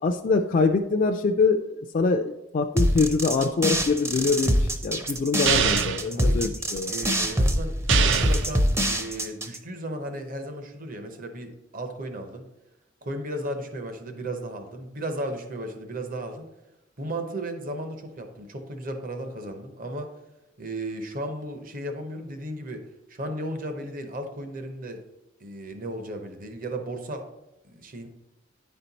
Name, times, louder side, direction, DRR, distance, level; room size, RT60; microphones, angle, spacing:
voice 1, 0.0-7.0, left 4 dB, 40° left, 4 dB, 0.3 m, -24 dB
sound 1, 2.8-9.6, equal, 15° right, 0.5 m, -24 dB
sound 2, 5.4-6.1 7.9-8.5, right 7 dB, 70° right, 0.5 m, -23 dB
voice 2, 6.1-6.6 6.9-7.7 8.1-12.5 13.0-16.5 17.0-20.1 20.6-25.0 25.4-27.3 27.7-28.1, right 1 dB, 45° right, 6 dB, 0.8 m, -35 dB
9.9 x 4.4 x 4.0 m, 0.92 s
head